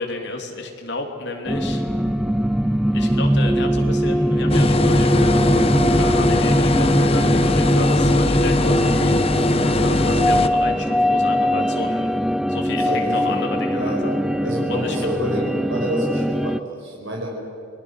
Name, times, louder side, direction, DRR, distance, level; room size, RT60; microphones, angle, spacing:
voice 1, 0.0-1.8 2.9-12.1 12.5-14.1 14.7-15.1, left 2 dB, 60° left, 2 dB, 3.0 m, -31 dB
sound 1, 1.5-16.6, equal, ahead, 0.5 m, -21 dB
sound 2, 4.5-10.5, left 2 dB, 30° left, 0.9 m, -20 dB
voice 2, 12.9-14.1 14.4-17.3, right 1 dB, 75° right, -1 dB, 5.3 m, -28 dB
29.5 x 22.0 x 6.4 m, 2.4 s
head